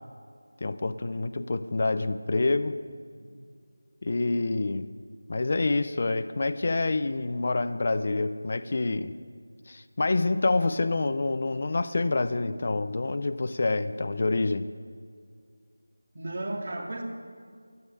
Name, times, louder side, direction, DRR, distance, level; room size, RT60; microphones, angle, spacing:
voice 1, 0.6-2.8 4.0-4.9 5.3-9.2 9.7-14.7, left 3 dB, 30° left, 12 dB, 0.5 m, -27 dB
voice 2, 16.1-17.0, right 1 dB, 40° right, 2 dB, 2.0 m, -34 dB
13.0 x 8.9 x 10.0 m, 2.1 s
figure-of-eight pair, 180°, 0 cm